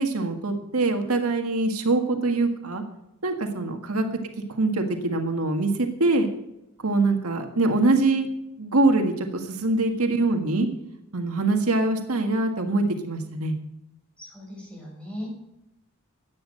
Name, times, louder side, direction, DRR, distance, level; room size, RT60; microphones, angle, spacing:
voice 1, 0.0-2.8 3.2-4.1 4.6-6.3 6.8-8.3 8.6-10.7 11.1-13.5, right 2 dB, 80° right, 4 dB, 1.7 m, -23 dB
voice 2, 14.2-15.3, left 1 dB, 5° left, -2 dB, 5.8 m, -38 dB
14.0 x 9.6 x 6.5 m, 0.87 s
head